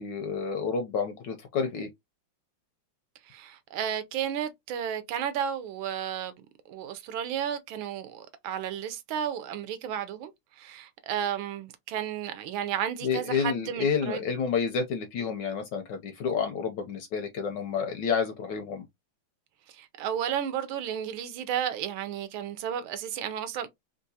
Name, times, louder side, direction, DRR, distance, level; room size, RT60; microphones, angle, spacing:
voice 1, 0.0-1.9 13.0-18.8, left 6 dB, 75° left, 1.0 m, -29 dB
voice 2, 3.2-6.4 6.7-14.2 19.7-23.7, right 9 dB, 80° right, 1.3 m, -33 dB
3.7 x 2.3 x 2.6 m
omnidirectional pair, 2.3 m